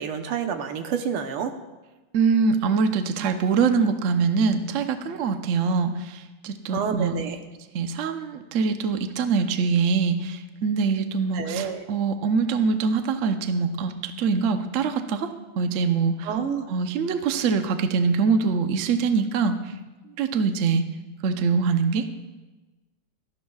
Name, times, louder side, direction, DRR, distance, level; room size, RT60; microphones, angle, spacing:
voice 1, 0.0-1.5 6.7-7.4 11.3-11.8 16.3-16.7, right 7 dB, 90° right, 6 dB, 1.9 m, -28 dB
voice 2, 2.1-7.2 7.7-15.3 15.6-16.3 16.7-19.7 20.2-20.8 21.2-22.1, right 5 dB, 65° right, 7 dB, 0.7 m, -24 dB
18.0 x 13.0 x 2.4 m, 1.2 s
omnidirectional pair, 2.3 m